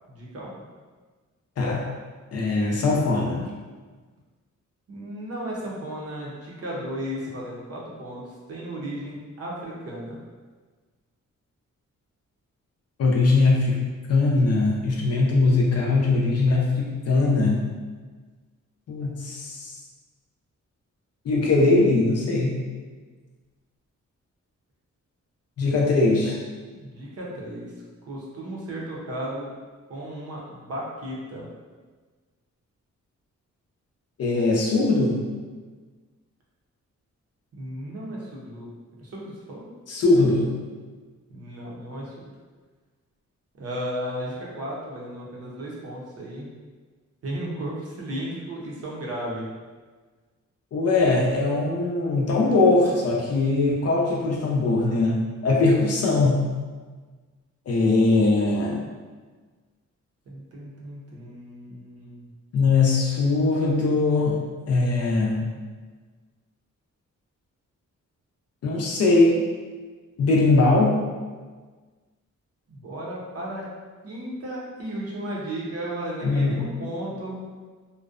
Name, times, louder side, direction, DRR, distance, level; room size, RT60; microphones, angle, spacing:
voice 1, 0.1-0.6 4.9-8.2 8.5-10.2 26.8-27.7 28.0-29.5 29.9-31.5 37.6-38.7 39.0-39.7 41.3-42.3 43.6-46.5 47.2-49.5 60.3-62.3 72.7-73.6 74.0-77.4, right 1 dB, 55° right, -4 dB, 0.6 m, -34 dB
voice 2, 2.3-3.4 13.0-13.8 14.1-17.6 18.9-19.6 21.3-22.5 25.6-26.4 34.2-35.2 39.9-40.5 50.7-56.4 57.7-58.8 62.5-64.4 64.7-65.5 68.6-69.4 70.2-70.9 76.2-76.6, left 3 dB, 55° left, -2 dB, 0.5 m, -21 dB
2.5 x 2.1 x 2.4 m, 1.4 s
wide cardioid pair, 165°, 30 cm